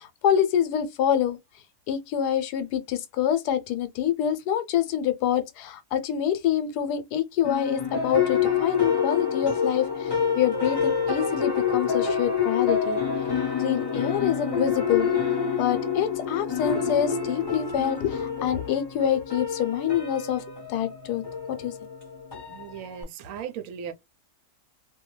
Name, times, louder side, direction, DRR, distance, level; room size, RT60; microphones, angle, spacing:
voice 1, 0.0-1.4 1.9-13.0 13.6-15.1 15.6-20.4 20.7-21.2 21.5-21.7, left 9 dB, 80° left, 1.1 m, -26 dB
sound 1, 7.4-23.0, left 6 dB, 20° left, 0.9 m, -27 dB
voice 2, 22.5-23.9, right 8 dB, 70° right, 0.8 m, -37 dB
2.6 x 2.2 x 3.0 m
omnidirectional pair, 1.7 m